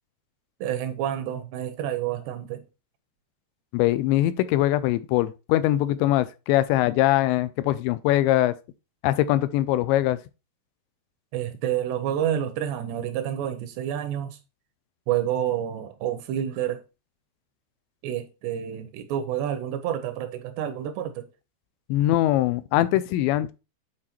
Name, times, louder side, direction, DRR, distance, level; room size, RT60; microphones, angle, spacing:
voice 1, 0.6-2.6 11.3-14.4 15.1-16.8 18.0-21.3, right 10 dB, 80° right, 2.6 m, -29 dB
voice 2, 3.7-8.5 9.0-10.2 21.9-23.5, left 14 dB, 85° left, 2.8 m, -22 dB
8.8 x 4.1 x 4.2 m
omnidirectional pair, 5.2 m